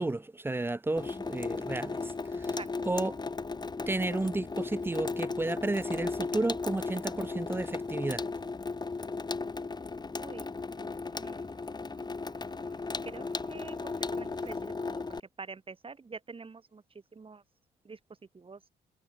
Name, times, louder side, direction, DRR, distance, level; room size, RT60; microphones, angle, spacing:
voice 1, 0.0-2.6 2.8-3.2 3.9-8.3, right 2 dB, 10° right, 0.5 m, -32 dB
Water tap faucet / Sink (filling or washing), 1.0-15.2, left 4 dB, 20° left, 1.1 m, -36 dB
sound 1, 7.4-14.7, right 9 dB, 60° right, 5.6 m, -63 dB
voice 2, 10.2-10.5 11.1-11.4 13.0-15.0 15.4-17.4 17.8-18.0 18.3-18.6, right 4 dB, 25° right, 1.6 m, -46 dB
cardioid pair, 90°, 20 cm